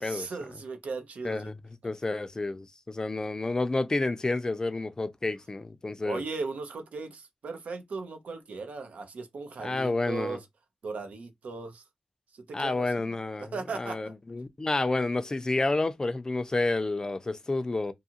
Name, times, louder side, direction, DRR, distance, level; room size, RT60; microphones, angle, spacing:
voice 1, 0.0-1.5 6.0-10.4 10.8-11.8 12.3-13.1 13.4-14.1, right 4 dB, 85° right, 0.7 m, -37 dB
voice 2, 1.2-1.6 1.8-6.2 9.6-10.4 12.5-17.9, left 2 dB, 30° left, 0.4 m, -30 dB
2.6 x 2.4 x 2.8 m
wide cardioid pair, 85°, 2 cm